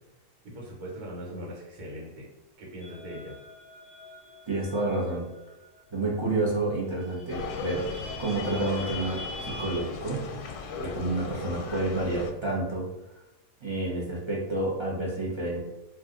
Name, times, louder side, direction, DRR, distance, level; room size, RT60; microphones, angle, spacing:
voice 1, 0.4-2.3 2.6-3.4, equal, 85° right, -2 dB, 1.4 m, -40 dB
sound 1, 2.8-6.4 6.7-6.8 7.0-9.8, left 1 dB, 65° left, 0.6 m, -44 dB
voice 2, 4.5-5.3 5.9-7.9 8.2-10.2 10.8-12.9 13.6-15.6, right 2 dB, 40° right, -5 dB, 0.4 m, -29 dB
sound 2, 7.3-12.3, left 4 dB, 90° left, 1.1 m, -37 dB
2.7 x 2.4 x 3.5 m, 0.97 s
omnidirectional pair, 1.6 m